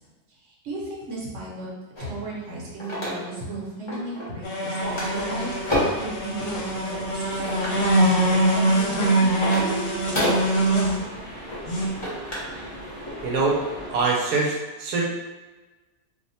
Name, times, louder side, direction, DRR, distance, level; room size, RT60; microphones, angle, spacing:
voice 1, 0.4-1.7 2.0-9.2, right 2 dB, 55° right, -5 dB, 1.1 m, -35 dB
sound 1, 2.0-3.5 3.9-4.4 4.7-6.1 6.8-7.8 8.4-12.6 12.9-13.1, left 1 dB, 25° left, 0.7 m, -30 dB
sound 2, 4.4-11.0 11.7-11.9, right 1 dB, 65° left, 1.0 m, -23 dB
sound 3, 4.8-14.0, right 1 dB, 30° right, 0.8 m, -38 dB
voice 2, 13.2-13.6 13.9-15.1, right 3 dB, 85° right, -2 dB, 1.1 m, -23 dB
2.7 x 2.1 x 4.0 m, 1.2 s
omnidirectional pair, 1.6 m